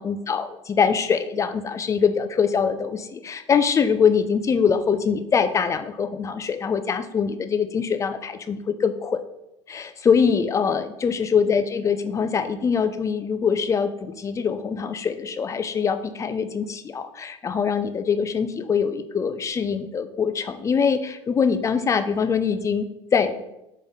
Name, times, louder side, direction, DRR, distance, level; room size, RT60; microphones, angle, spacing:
voice 1, 0.0-9.2 9.7-23.4, left 6 dB, 20° left, 10 dB, 0.4 m, -23 dB
3.8 x 3.5 x 3.8 m, 0.88 s
figure-of-eight pair, 65°, 16 cm